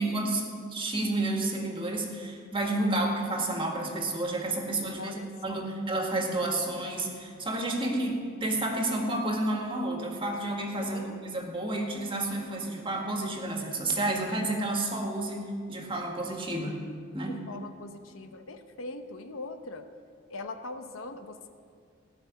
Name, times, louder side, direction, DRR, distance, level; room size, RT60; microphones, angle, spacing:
voice 1, 0.0-16.8 17.1-17.4, right 2 dB, 25° right, 1 dB, 1.8 m, -30 dB
voice 2, 5.0-5.7 10.8-11.3 17.3-19.9 20.3-21.5, left 2 dB, 85° left, 7 dB, 1.0 m, -42 dB
17.0 x 6.1 x 9.3 m, 2.2 s
head